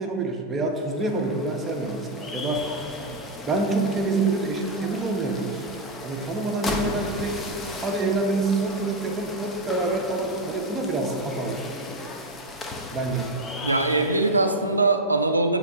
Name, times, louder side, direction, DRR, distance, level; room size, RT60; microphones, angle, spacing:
voice 1, 0.0-2.6 3.5-5.8 6.0-7.4 7.8-11.6 12.9-13.3, right 3 dB, 20° right, 2 dB, 0.7 m, -26 dB
sound 1, 0.7-14.8, left 2 dB, 20° left, 0.5 m, -36 dB
voice 2, 13.6-15.6, right 2 dB, 85° right, 6 dB, 0.4 m, -22 dB
6.6 x 2.9 x 4.9 m, 2.3 s
figure-of-eight pair, 90°, 0 cm